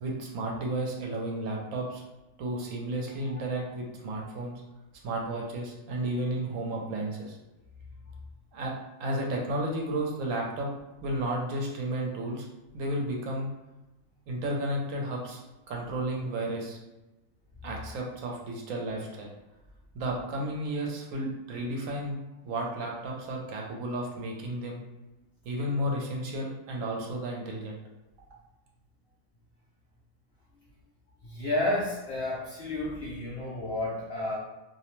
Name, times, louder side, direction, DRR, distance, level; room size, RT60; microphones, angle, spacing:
voice 1, 0.0-2.0 2.4-4.6 5.0-7.4 8.5-8.7 9.0-10.7 11.0-12.5 12.7-13.5 14.3-16.8 17.6-19.3 19.9-22.2 22.4-24.8 25.4-27.8, right 1 dB, 70° right, -1 dB, 0.9 m, -32 dB
voice 2, 31.2-34.4, left 1 dB, 65° left, -6 dB, 0.6 m, -31 dB
2.6 x 2.0 x 2.9 m, 1.0 s
omnidirectional pair, 1.5 m